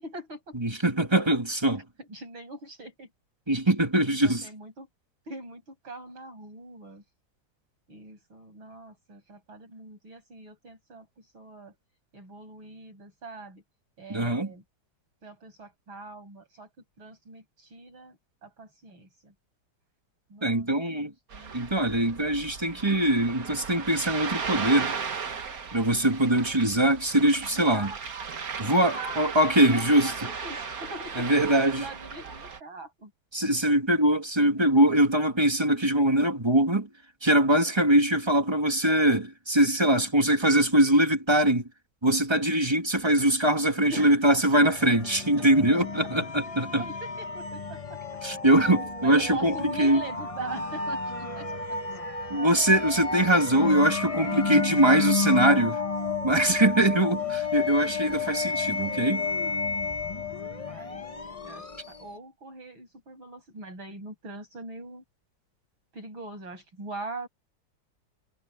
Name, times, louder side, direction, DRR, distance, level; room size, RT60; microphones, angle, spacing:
voice 1, 0.0-0.6 2.0-3.1 4.0-4.9 5.3-7.0 7.9-11.7 12.1-13.6 14.0-14.6 15.2-16.7 17.0-19.3 20.3-20.7 20.9-22.9 27.5-28.0 28.8-29.2 29.7-33.1 34.4-34.6 43.9-44.2 45.4-45.5 46.0-46.1 46.8-48.0 48.8-51.5 60.7-61.0 61.4-65.0 65.9-67.3, right 2 dB, 75° right, 8.2 m, -42 dB
voice 2, 0.5-1.8 3.5-4.5 14.1-14.5 20.4-21.1 21.5-24.9 25.7-27.9 28.6-30.1 31.2-31.9 33.3-36.9 37.2-41.7 42.0-46.8 48.2-50.0 52.3-55.8 56.2-59.3, right 1 dB, 15° right, 2.1 m, -22 dB
Ocean, 21.3-32.6, right 6 dB, 50° right, 1.8 m, -36 dB
sound 1, 44.6-62.2, left 4 dB, 30° left, 0.7 m, -32 dB
omnidirectional pair, 2.2 m